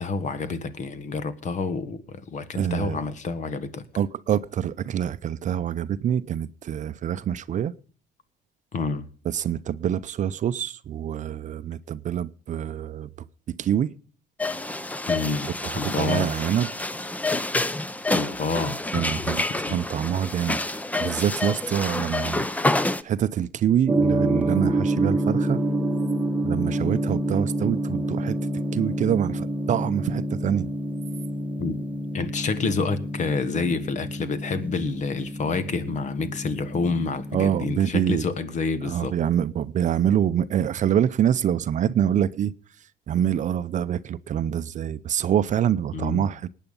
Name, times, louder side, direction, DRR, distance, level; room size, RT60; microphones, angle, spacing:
voice 1, 0.0-3.8 8.7-9.1 15.1-16.3 18.1-18.8 19.2-19.8 31.6-31.8 32.1-39.2 45.9-46.3, left 4 dB, 45° left, 1.6 m, -28 dB
voice 2, 2.6-3.0 4.0-7.7 9.3-13.1 13.6-13.9 15.6-16.7 18.9-20.6 21.0-22.5 23.0-25.6 26.4-28.4 28.7-30.7 37.3-38.3 38.8-42.5 43.1-46.5, right 9 dB, 45° right, 0.6 m, -25 dB
sound 1, 14.4-23.0, left 2 dB, 10° left, 0.7 m, -28 dB
Gong, 23.9-37.6, right 1 dB, 10° right, 1.4 m, -27 dB
19.0 x 9.2 x 5.4 m
cardioid pair, 110°, 17 cm